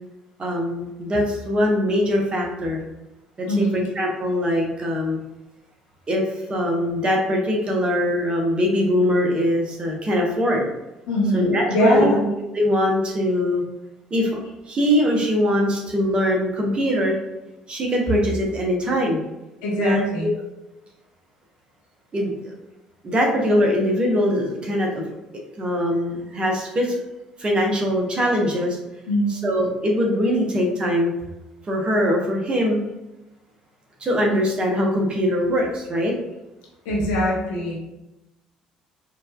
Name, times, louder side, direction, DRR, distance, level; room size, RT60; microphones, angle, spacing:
voice 1, 0.4-2.8 3.4-5.2 6.1-6.2 6.5-10.7 11.3-12.2 12.5-13.6 14.1-14.4 14.7-17.2 17.7-19.2 19.8-20.3 22.1-22.5 23.0-25.0 25.6-27.0 27.4-28.8 29.4-31.1 31.7-32.8 34.0-36.1, equal, 30° right, 0 dB, 1.0 m, -22 dB
voice 2, 3.5-3.8 11.1-12.3 19.6-20.3 29.1-29.4 36.8-37.7, equal, 70° left, -3 dB, 1.0 m, -22 dB
4.5 x 2.6 x 2.4 m, 0.97 s
figure-of-eight pair, 55°, 3 cm